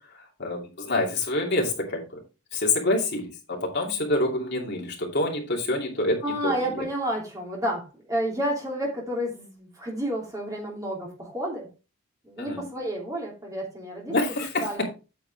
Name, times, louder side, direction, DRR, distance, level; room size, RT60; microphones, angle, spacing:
voice 1, 0.4-2.2 2.5-6.9 12.4-12.7 14.1-14.8, left 2 dB, 50° left, 0 dB, 2.6 m, -27 dB
voice 2, 6.2-11.7 12.2-14.1 14.6-14.8, equal, 15° right, -2 dB, 2.9 m, -30 dB
8.7 x 7.1 x 3.4 m, 0.31 s
head